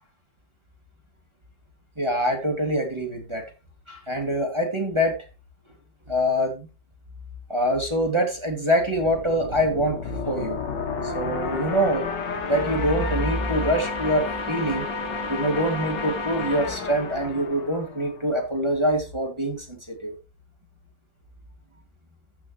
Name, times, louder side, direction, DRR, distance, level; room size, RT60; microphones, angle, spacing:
voice 1, 2.0-3.4 3.9-5.2 6.1-6.7 7.5-10.6 11.0-12.1 12.4-14.9 15.3-20.1, equal, 15° right, 1 dB, 2.2 m, -25 dB
sound 1, 9.0-18.5, left 4 dB, 75° left, 2.3 m, -31 dB
14.0 x 7.2 x 3.0 m, 0.29 s
omnidirectional pair, 2.0 m